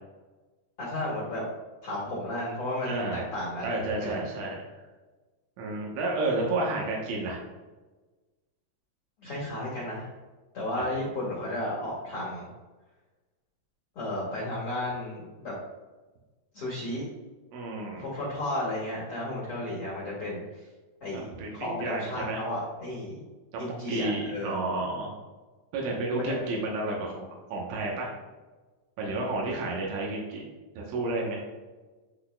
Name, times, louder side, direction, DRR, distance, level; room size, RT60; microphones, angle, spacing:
voice 1, 0.8-1.4 1.8-3.7 4.0-4.3 9.2-10.1 10.5-12.5 13.9-15.5 16.5-17.0 17.9-20.7 21.0-21.2 21.5-23.2 23.6-24.6 26.1-26.4, left 1 dB, 90° left, -6 dB, 1.2 m, -33 dB
voice 2, 2.8-3.3 3.6-4.8 5.6-7.4 10.7-11.0 17.5-18.0 21.1-22.4 23.9-25.1 25.7-28.1 29.0-30.4 30.8-31.4, right 2 dB, 90° right, -2 dB, 3.4 m, -31 dB
11.5 x 4.1 x 2.2 m, 1.2 s
omnidirectional pair, 5.2 m